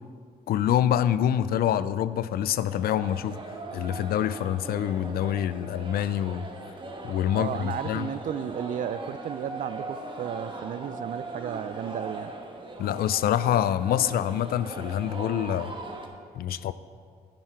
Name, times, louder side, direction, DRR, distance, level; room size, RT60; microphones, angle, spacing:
voice 1, 0.5-3.4 3.7-6.5 7.0-8.1 12.8-15.7 16.4-16.7, left 10 dB, 75° left, 15 dB, 0.4 m, -26 dB
sound 1, 2.7-16.1, right 2 dB, 30° right, 1.2 m, -39 dB
voice 2, 7.3-12.3, right 9 dB, 60° right, 15 dB, 0.4 m, -34 dB
10.5 x 7.4 x 4.5 m, 2.3 s
cardioid pair, 100°, 16 cm